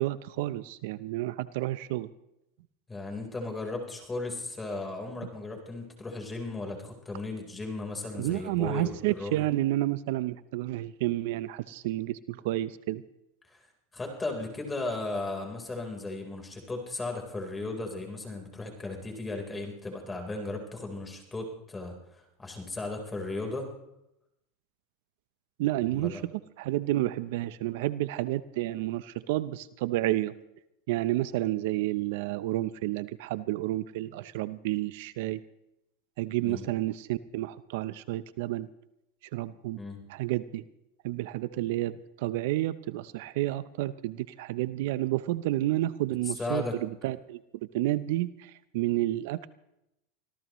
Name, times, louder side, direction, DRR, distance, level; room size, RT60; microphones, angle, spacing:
voice 1, 0.0-2.1 8.2-13.0 25.6-26.3 26.6-30.3 30.9-35.4 36.2-38.7 39.3-39.8 40.1-40.6 41.0-47.4 47.7-49.5, right 16 dB, 70° right, 15 dB, 0.6 m, -30 dB
voice 2, 2.9-9.5 13.5-13.6 13.9-23.7 25.9-26.2 36.4-36.6 39.8-40.0 46.3-46.8, left 2 dB, 15° left, 2 dB, 3.9 m, -36 dB
25.0 x 17.0 x 3.1 m, 0.86 s
hypercardioid pair, 115°, 0 cm